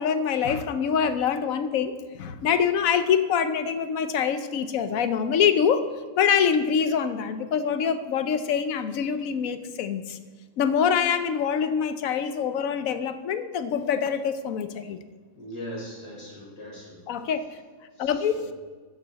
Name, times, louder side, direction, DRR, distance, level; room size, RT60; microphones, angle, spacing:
voice 1, 0.0-5.8 6.2-10.2 10.6-15.0 17.1-17.5 18.0-18.3, left 7 dB, 75° left, 11 dB, 1.2 m, -25 dB
voice 2, 15.3-17.0 18.0-18.5, equal, 50° left, -5 dB, 4.7 m, -40 dB
13.5 x 9.6 x 4.1 m, 1.4 s
omnidirectional pair, 1.5 m